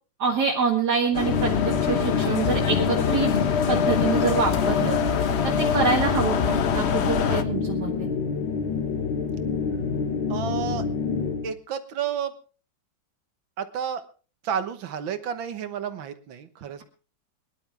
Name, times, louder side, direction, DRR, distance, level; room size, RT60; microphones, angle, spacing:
voice 1, 0.2-3.3 3.7-5.0 5.4-8.1, right 5 dB, 55° right, 0 dB, 2.3 m, -26 dB
sound 1, 1.1-11.5, left 5 dB, 75° left, 1.9 m, -27 dB
sound 2, 1.1-7.4, left 7 dB, 60° left, 0.7 m, -25 dB
voice 2, 10.3-10.9 11.4-12.3 13.6-14.0 14.4-16.8, right 8 dB, 75° right, 11 dB, 1.9 m, -31 dB
23.0 x 11.5 x 3.4 m, 0.36 s
omnidirectional pair, 2.2 m